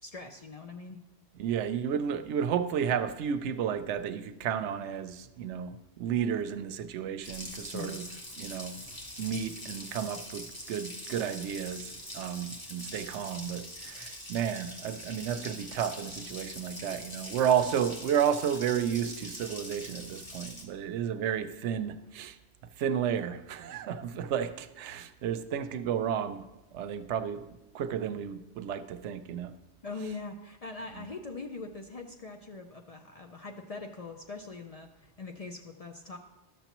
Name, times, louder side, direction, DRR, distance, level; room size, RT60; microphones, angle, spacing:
voice 1, 0.0-1.0 7.7-8.1 29.8-36.2, left 3 dB, 50° left, 4 dB, 0.4 m, -42 dB
voice 2, 1.4-8.1 8.4-8.8 9.2-22.4 22.8-26.5 26.7-27.5 27.7-29.5 30.9-31.1, right 8 dB, 90° right, 11 dB, 0.9 m, -32 dB
Water tap faucet, 7.2-20.6, left 1 dB, 20° left, 1.0 m, -43 dB
12.0 x 6.9 x 3.0 m, 1.0 s
omnidirectional pair, 1.2 m